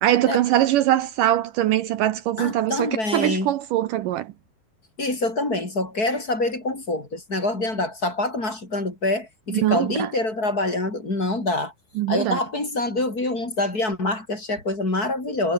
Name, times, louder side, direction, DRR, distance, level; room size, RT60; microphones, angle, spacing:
voice 1, 0.0-4.3 9.5-10.1 12.0-12.4, right 13 dB, 75° right, 2.1 m, -22 dB
voice 2, 2.4-3.5 5.0-11.7 12.1-15.5, left 2 dB, 20° left, 5.4 m, -25 dB
omnidirectional pair, 4.5 m